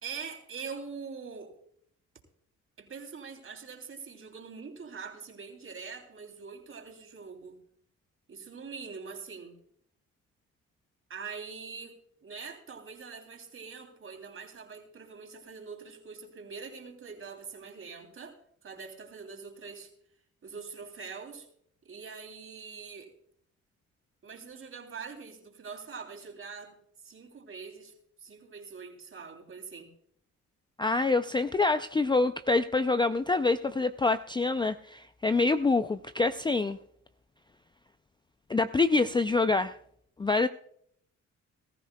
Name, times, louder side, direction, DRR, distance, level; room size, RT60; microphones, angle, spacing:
voice 1, 0.0-1.5 2.8-7.6 8.3-9.6 11.1-18.4 18.6-19.9 20.4-21.5 21.8-23.1 24.2-26.8 27.0-27.9 28.2-29.9, right 5 dB, 45° right, 3 dB, 3.1 m, -43 dB
voice 2, 30.8-36.8 38.5-39.8 40.2-40.5, left 3 dB, 15° left, 11 dB, 0.4 m, -26 dB
20.0 x 14.0 x 2.3 m, 0.67 s
cardioid pair, 90°, 30 cm